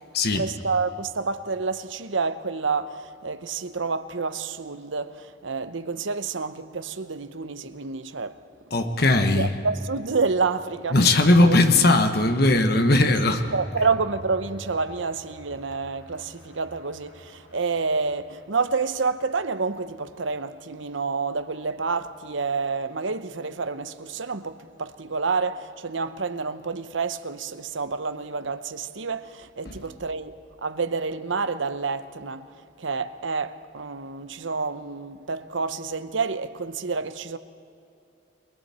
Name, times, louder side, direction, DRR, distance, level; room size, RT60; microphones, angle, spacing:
voice 1, 0.3-8.4 9.3-11.6 11.8-12.0 13.5-30.3 30.6-32.5 32.8-37.4, right 4 dB, 80° right, 0.9 m, -29 dB
voice 2, 8.7-9.5 10.9-13.5 29.6-29.8, left 2 dB, 55° left, 1.3 m, -19 dB
sound 1, 10.3-18.5 19.0-19.1 19.4-19.5 19.8-20.0, right 1 dB, 75° left, 5.3 m, -46 dB
30.0 x 21.5 x 4.4 m
head